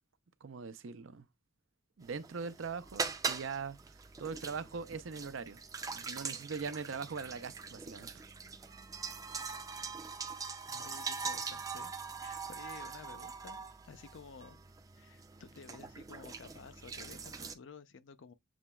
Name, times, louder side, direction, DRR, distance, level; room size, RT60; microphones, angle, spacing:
voice 1, 0.4-1.3 2.0-3.8 4.2-5.6 5.9-8.2, right 5 dB, 90° right, 0.6 m, -41 dB
sound 1, 2.0-17.5, right 5 dB, 20° right, 0.3 m, -42 dB
voice 2, 10.7-11.9 12.2-14.7 14.9-18.3, left 5 dB, 75° left, 0.5 m, -53 dB
7.1 x 3.0 x 2.2 m
head